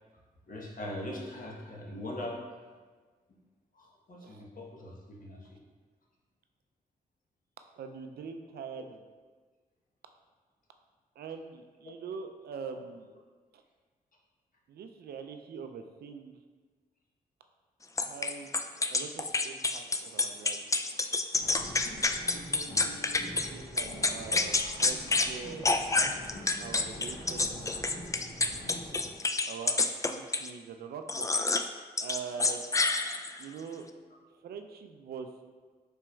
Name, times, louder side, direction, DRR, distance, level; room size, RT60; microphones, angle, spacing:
voice 1, 0.5-2.4 3.7-4.9 5.2-5.6, left 1 dB, 60° left, -2 dB, 1.1 m, -40 dB
voice 2, 7.7-9.0 11.2-13.2 13.5-13.6 14.7-16.4 18.0-18.5 18.9-20.6 22.3-24.5 24.8-25.7 26.6-28.0 29.5-31.3 32.0-32.6 33.4-33.9 34.4-35.3, right 6 dB, 75° right, 6 dB, 0.4 m, -43 dB
sound 1, 18.0-23.5 23.8-25.3 25.6-30.5 31.1-31.7 32.0-33.4, left 3 dB, 20° left, 0.3 m, -28 dB
sound 2, 21.3-29.1, left 1 dB, 85° left, 1.3 m, -45 dB
5.0 x 4.3 x 2.3 m, 1.4 s
supercardioid pair, 45°, 16 cm